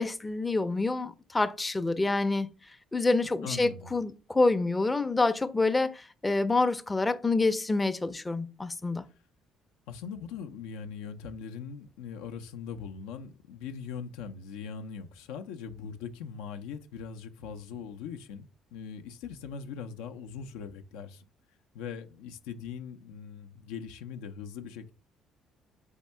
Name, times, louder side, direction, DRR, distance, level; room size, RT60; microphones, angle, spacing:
voice 1, 0.0-2.5 2.9-9.1, left 3 dB, 20° left, 0.5 m, -27 dB
voice 2, 3.4-3.9 9.9-21.2 21.7-24.9, left 6 dB, 85° left, 0.4 m, -41 dB
3.6 x 3.5 x 4.2 m
supercardioid pair, 65°, 0 cm